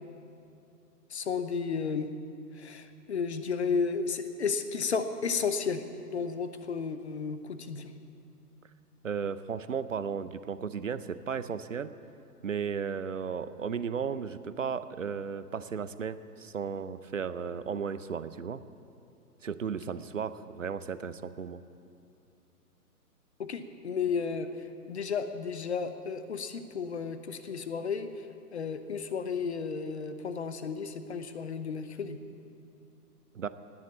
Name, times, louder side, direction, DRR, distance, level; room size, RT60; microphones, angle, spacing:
voice 1, 1.1-2.1 2.6-5.8 6.1-7.9 23.4-24.5 24.9-28.1 28.5-32.2, left 5 dB, 45° left, 10 dB, 0.9 m, -33 dB
voice 2, 9.0-11.9 12.4-18.6 19.4-21.6 33.3-33.5, right 6 dB, 55° right, 13 dB, 0.7 m, -35 dB
18.5 x 7.5 x 8.6 m, 2.5 s
figure-of-eight pair, 130°, 47 cm